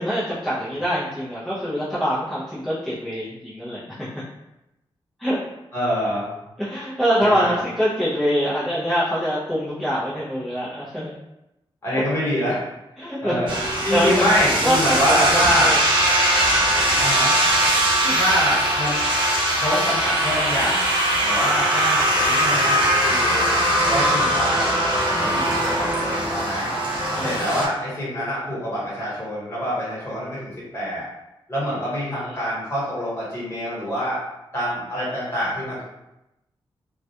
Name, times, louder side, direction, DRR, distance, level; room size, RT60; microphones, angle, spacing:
voice 1, 0.0-4.1 5.2-5.4 6.6-11.1 11.9-12.0 13.0-13.6 13.9-14.2 14.6-15.8 18.0-18.2 25.2-25.5 27.1-27.4 31.7-31.8 32.3-32.4, equal, ahead, -11 dB, 0.5 m, -24 dB
voice 2, 5.7-6.3 7.2-7.5 11.8-12.7 13.2-13.5 13.8-15.8 17.0-17.4 18.1-19.0 19.6-20.9 21.2-23.5 23.9-24.8 25.1-26.7 27.2-31.1 31.5-34.2 34.5-35.8, equal, 30° left, -7 dB, 1.2 m, -25 dB
snowmobiles pass by medium speed nice thin, 13.5-27.7, right 1 dB, 55° right, 0.8 m, -21 dB
2.3 x 2.1 x 2.7 m, 0.91 s
wide cardioid pair, 115°, 9 cm